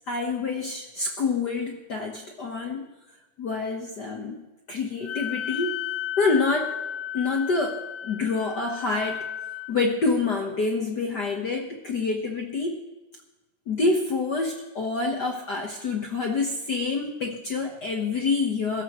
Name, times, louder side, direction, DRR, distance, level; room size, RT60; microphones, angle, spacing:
voice 1, 0.1-2.9 3.4-4.4 4.7-5.7 6.2-6.8 7.1-9.3 9.7-12.8 13.7-18.8, left 3 dB, 60° left, 2 dB, 1.1 m, -27 dB
Wind instrument woodwind instrument, 5.0-9.7, left 10 dB, 80° left, 1.5 m, -33 dB
22.5 x 13.0 x 3.1 m, 1.1 s
omnidirectional pair, 3.5 m